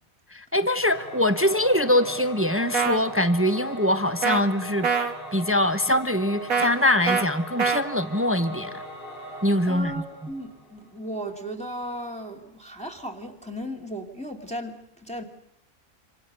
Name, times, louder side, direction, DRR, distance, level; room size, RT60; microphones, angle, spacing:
voice 1, 0.3-4.9 5.3-8.7 9.4-9.9, left 1 dB, 10° right, 12 dB, 0.9 m, -23 dB
Singing / Musical instrument, 0.8-10.8, right 1 dB, 40° left, 3.4 m, -39 dB
sound 1, 2.7-3.0 4.2-4.4 4.8-5.1 6.5-6.7 7.1-7.3 7.6-7.8, right 5 dB, 90° right, 2.1 m, -23 dB
voice 2, 9.7-15.2, equal, 5° left, 1 dB, 2.7 m, -36 dB
27.0 x 26.0 x 6.8 m, 0.78 s
omnidirectional pair, 1.4 m